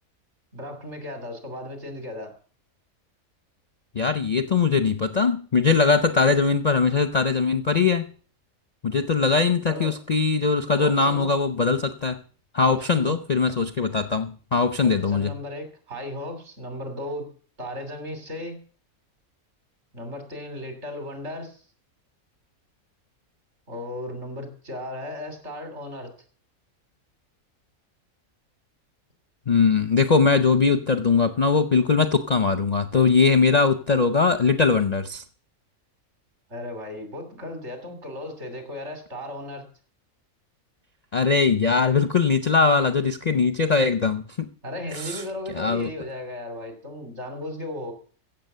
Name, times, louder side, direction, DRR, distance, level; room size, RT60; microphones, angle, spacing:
voice 1, 0.5-2.3 9.7-10.0 10.8-11.3 12.7-13.1 14.8-17.3 17.6-18.6 19.9-21.6 23.7-26.1 36.5-39.7 44.6-47.9, left 1 dB, 55° right, 6 dB, 3.3 m, -35 dB
voice 2, 3.9-8.0 8.8-12.2 12.5-15.3 29.5-35.2 41.1-44.5 44.9-45.2 45.5-45.9, left 4 dB, 40° left, 9 dB, 0.6 m, -21 dB
15.5 x 7.1 x 6.8 m, 0.42 s
omnidirectional pair, 1.5 m